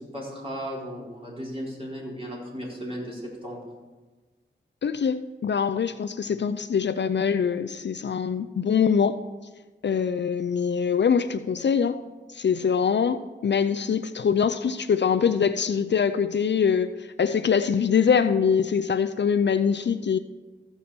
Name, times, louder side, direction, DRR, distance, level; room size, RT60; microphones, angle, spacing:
voice 1, 0.0-3.6, equal, 30° right, -5 dB, 4.3 m, -35 dB
voice 2, 4.8-9.2 9.8-12.0 12.3-20.2, left 6 dB, 65° left, 10 dB, 0.4 m, -23 dB
15.0 x 7.0 x 4.3 m, 1.2 s
cardioid pair, 55°, 20 cm